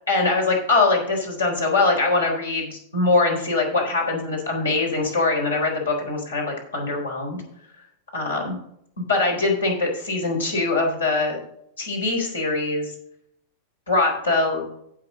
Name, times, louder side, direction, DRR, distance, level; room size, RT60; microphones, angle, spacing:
voice 1, 0.1-7.4 8.1-8.6 9.0-11.4 11.8-12.9 13.9-14.6, left 3 dB, 75° left, 0 dB, 3.9 m, -22 dB
16.5 x 5.9 x 3.7 m, 0.73 s
figure-of-eight pair, 90°, 0 cm